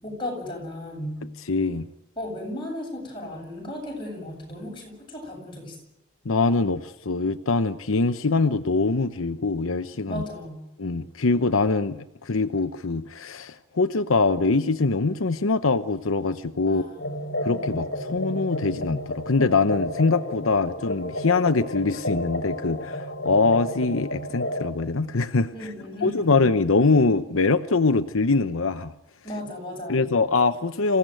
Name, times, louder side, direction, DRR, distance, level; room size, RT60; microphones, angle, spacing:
voice 1, 0.0-1.2 2.2-5.8 10.1-10.6 16.7-17.7 25.5-26.4 29.2-30.1, left 1 dB, 25° left, 0 dB, 7.8 m, -35 dB
voice 2, 1.5-1.9 6.2-10.2 10.8-16.9 17.4-25.5 26.0-28.9 29.9-31.0, left 3 dB, 80° left, 9 dB, 0.8 m, -23 dB
sound 1, 17.0-24.7, left 1 dB, 55° left, 2.2 m, -32 dB
26.5 x 16.5 x 9.1 m, 0.91 s
head